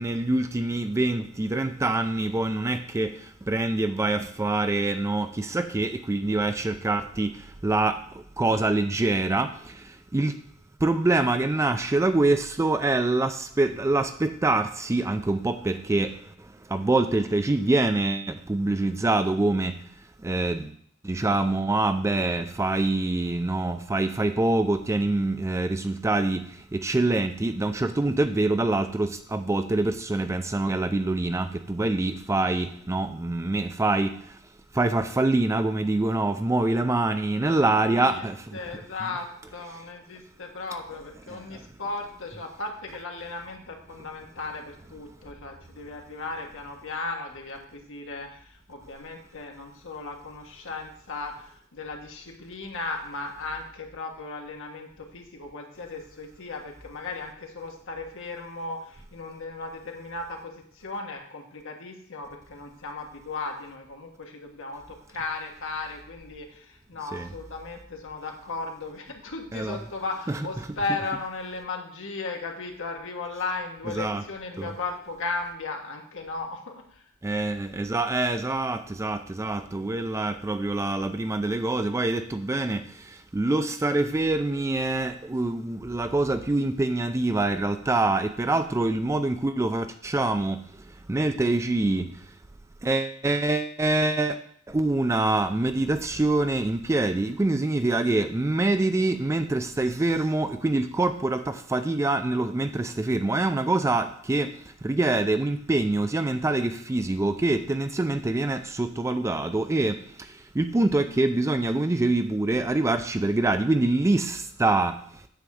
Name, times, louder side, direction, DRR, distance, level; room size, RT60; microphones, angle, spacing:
voice 1, 0.0-3.1 3.5-7.3 7.6-8.0 8.4-9.7 10.1-10.3 10.8-16.1 16.7-19.7 20.2-20.7 21.0-26.4 26.7-34.1 34.7-38.8 41.3-41.4 67.1-67.3 69.5-69.8 70.3-70.5 73.9-74.2 74.6-74.7 77.2-82.8 83.3-90.6 91.1-92.1 92.8-94.4 94.7-104.5 104.8-110.0 110.6-115.0, right 2 dB, 15° right, 9 dB, 0.3 m, -25 dB
voice 2, 37.3-38.3 38.5-77.0, left 3 dB, 65° left, 2 dB, 1.5 m, -36 dB
9.2 x 3.6 x 6.9 m, 0.63 s
head